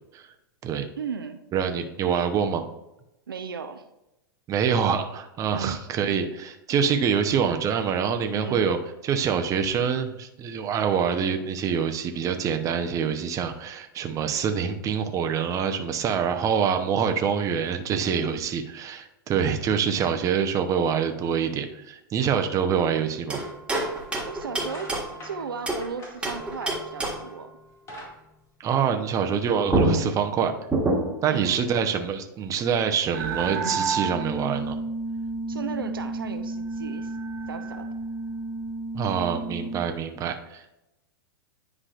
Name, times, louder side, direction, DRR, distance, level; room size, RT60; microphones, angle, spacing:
voice 1, 0.9-1.4 3.3-3.8 5.5-6.1 8.3-8.7 24.3-24.9 25.2-27.5 31.3-31.8 35.5-37.1 37.5-37.9, right 6 dB, 90° right, 7 dB, 0.7 m, -35 dB
voice 2, 1.5-2.6 4.5-8.8 9.0-23.4 28.6-30.5 31.2-34.8 38.9-40.8, right 7 dB, 30° right, 6 dB, 0.8 m, -25 dB
sound 1, 23.3-25.9 26.2-27.4 29.3-29.4 29.7-31.3, right 2 dB, 10° right, 1.7 m, -27 dB
sound 2, 24.0-24.2 24.5-27.3 27.6-29.3, equal, 25° left, 2.2 m, -44 dB
sound 3, 33.1-39.8, right 3 dB, 55° right, 1.5 m, -31 dB
9.9 x 4.8 x 2.5 m, 0.90 s
hypercardioid pair, 110°, 12 cm